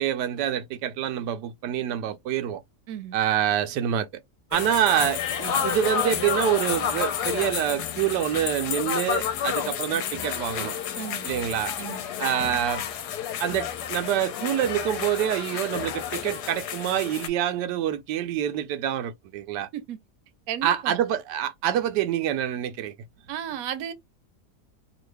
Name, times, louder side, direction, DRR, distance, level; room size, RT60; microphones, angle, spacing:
voice 1, 0.0-2.6 3.1-4.1 4.5-10.8 11.2-11.7 12.2-12.8 13.4-19.7 20.6-22.9, right 10 dB, 90° right, 1.2 m, -26 dB
voice 2, 2.9-3.2 11.0-11.3 11.8-12.0 19.7-20.0 20.5-21.0 23.3-23.9, right 10 dB, 65° right, 1.0 m, -34 dB
sound 1, 4.5-17.3, left 8 dB, 80° left, 1.1 m, -30 dB
3.0 x 2.5 x 3.2 m
omnidirectional pair, 1.8 m